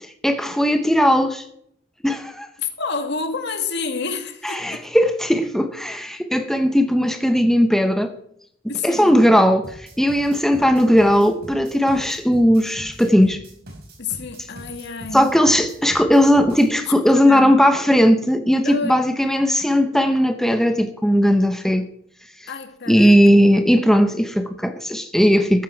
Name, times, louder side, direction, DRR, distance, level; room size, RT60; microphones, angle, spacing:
voice 1, 0.2-1.4 2.0-2.5 4.4-8.1 8.8-13.4 15.1-21.9 22.9-25.6, equal, ahead, 0.9 m, -17 dB
voice 2, 2.6-4.9 8.7-9.2 14.0-15.3 17.0-17.6 18.6-19.0 22.5-23.3, left 4 dB, 60° left, 2.0 m, -29 dB
sound 1, 9.6-16.7, equal, 55° right, 5.2 m, -41 dB
14.5 x 12.5 x 4.7 m
head